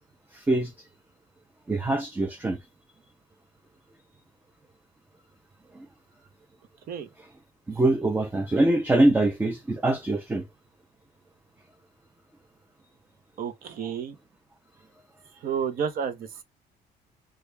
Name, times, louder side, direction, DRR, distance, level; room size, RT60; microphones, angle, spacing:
voice 1, 0.3-0.9 1.7-2.6 5.7-5.9 7.7-10.5, right 2 dB, 10° right, 0.5 m, -24 dB
voice 2, 13.4-14.2 15.4-16.4, right 7 dB, 60° right, 0.7 m, -31 dB
3.0 x 2.3 x 3.2 m
cardioid pair, 110°, 17 cm